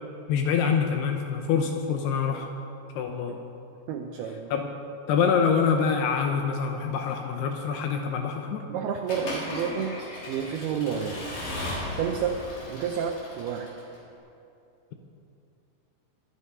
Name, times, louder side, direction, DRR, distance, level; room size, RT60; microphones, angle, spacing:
voice 1, 0.3-2.5 3.0-3.4 4.5-4.7 5.1-8.7, left 6 dB, 75° left, 3 dB, 2.7 m, -25 dB
voice 2, 3.9-4.5 8.7-9.9 10.3-11.3 11.9-12.4 12.7-13.7, right 7 dB, 75° right, 3 dB, 2.5 m, -30 dB
Accelerating revving vroom / Mechanisms, 9.1-14.0, left 1 dB, 55° left, 5.4 m, -36 dB
23.0 x 8.2 x 5.5 m, 2.7 s
omnidirectional pair, 5.1 m